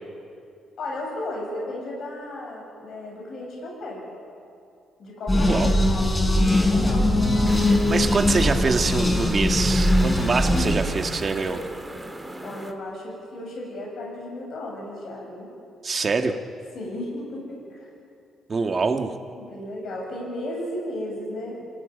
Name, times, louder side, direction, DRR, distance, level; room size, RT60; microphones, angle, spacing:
voice 1, 0.8-4.1 5.0-7.2 12.4-15.5 16.7-17.9 19.3-21.6, left 1 dB, 65° left, -2 dB, 7.7 m, -34 dB
sound 1, 5.3-11.3, left 1 dB, 20° left, 4.2 m, -21 dB
sound 2, 7.4-12.7, right 1 dB, 5° right, 2.6 m, -37 dB
voice 2, 7.7-11.6 15.8-16.4 18.5-19.1, right 4 dB, 40° right, 5 dB, 2.1 m, -25 dB
28.0 x 17.0 x 9.5 m, 2.5 s
cardioid pair, 90°, 0 cm